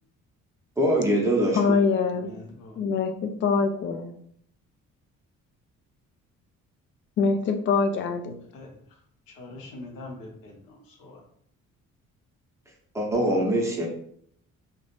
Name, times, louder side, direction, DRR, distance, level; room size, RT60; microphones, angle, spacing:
voice 1, 0.8-1.6 12.9-13.9, right 1 dB, 5° right, -2 dB, 0.8 m, -23 dB
voice 2, 1.5-2.3 2.8-4.1 7.2-8.4, left 5 dB, 30° left, 6 dB, 0.4 m, -24 dB
voice 3, 2.1-2.8 8.5-8.7 9.3-11.2, left 2 dB, 60° left, 0 dB, 0.8 m, -43 dB
2.3 x 2.2 x 3.1 m, 0.65 s
figure-of-eight pair, 45°, 41 cm